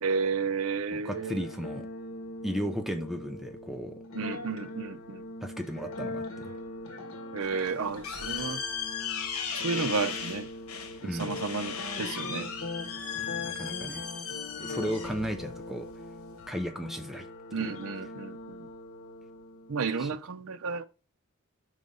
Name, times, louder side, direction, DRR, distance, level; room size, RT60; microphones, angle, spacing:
voice 1, 0.0-1.5 4.1-5.3 7.3-8.6 9.5-10.5 11.0-12.5 17.5-18.7 19.7-20.8, right 5 dB, 75° right, 0.6 m, -32 dB
voice 2, 0.9-1.9 2.4-4.0 5.4-6.5 11.0-11.4 13.2-14.1 14.6-15.9 16.5-17.3 17.5-17.7 19.9-20.1, equal, ahead, 0.5 m, -35 dB
sound 1, 1.0-20.0, left 2 dB, 65° left, 1.3 m, -41 dB
sound 2, 7.4-16.5, left 7 dB, 85° left, 1.1 m, -37 dB
5.0 x 3.9 x 5.3 m
head